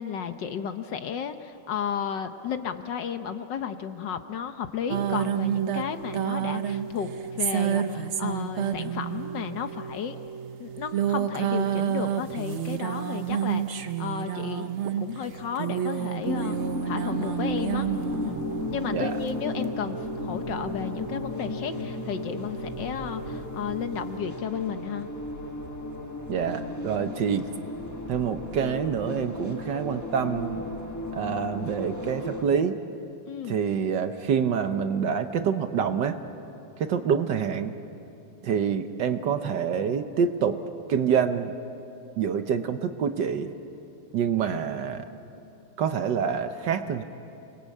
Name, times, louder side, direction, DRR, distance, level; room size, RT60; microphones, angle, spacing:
voice 1, 0.0-10.2 10.6-14.7 15.0-16.6 16.9-17.9 18.2-18.4 18.7-25.1 33.3-33.6, left 8 dB, 65° left, 8 dB, 1.4 m, -33 dB
sound 1, 4.9-24.2, right 9 dB, 85° right, 0.6 m, -31 dB
sound 2, 16.2-32.4, left 2 dB, 10° left, 1.2 m, -35 dB
voice 2, 26.3-27.5 28.1-30.7 31.1-32.7 33.5-36.2 36.8-37.7 38.4-40.6 40.9-41.5 42.2-43.5 44.1-45.0 45.8-47.0, right 7 dB, 60° right, 8 dB, 1.4 m, -26 dB
29.0 x 20.5 x 8.4 m, 2.8 s
omnidirectional pair, 2.4 m